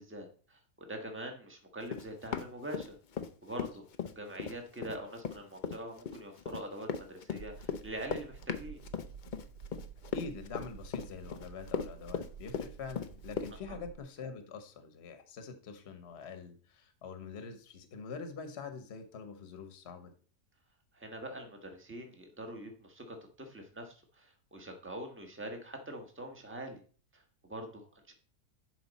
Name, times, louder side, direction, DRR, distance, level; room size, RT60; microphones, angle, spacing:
voice 1, 0.0-2.9 3.4-3.8 4.1-8.8 13.7-13.8 20.9-26.8 27.1-28.1, right 1 dB, 10° right, 3 dB, 1.3 m, -44 dB
Run, 1.9-3.3 3.6-13.5, left 6 dB, 65° left, 0.4 m, -37 dB
sound 1, 7.4-14.0, right 7 dB, 65° right, 1.0 m, -50 dB
voice 2, 10.1-20.1, left 5 dB, 50° left, 8 dB, 1.2 m, -45 dB
11.0 x 5.0 x 4.1 m, 0.41 s
omnidirectional pair, 1.6 m